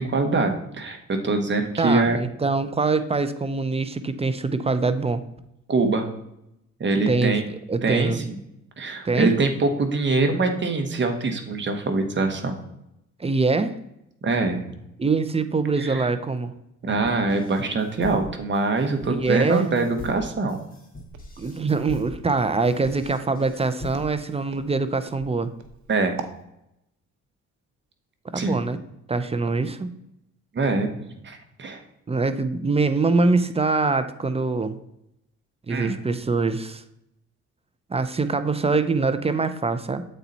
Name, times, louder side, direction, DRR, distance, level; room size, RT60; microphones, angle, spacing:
voice 1, 0.0-2.2 5.7-6.1 6.8-7.4 7.8-8.4 8.8-12.6 14.2-14.7 15.8-16.1 16.8-20.6 25.9-26.2 28.3-28.6 30.5-31.8 35.7-36.0, right 3 dB, 40° right, 6 dB, 1.3 m, -24 dB
voice 2, 1.8-5.2 7.1-7.4 7.7-8.3 9.0-9.3 13.2-13.8 15.0-16.5 19.1-19.7 21.4-25.5 28.2-28.8 29.1-29.9 32.1-34.8 35.7-36.8 37.9-40.0, right 3 dB, 20° right, 11 dB, 0.5 m, -24 dB
sound 1, 17.0-24.3, left 2 dB, 30° left, 2.1 m, -41 dB
Walk footsteps, 21.1-26.4, right 6 dB, 70° right, 0.9 m, -42 dB
8.1 x 4.3 x 4.0 m, 0.83 s
cardioid pair, 90°, 30 cm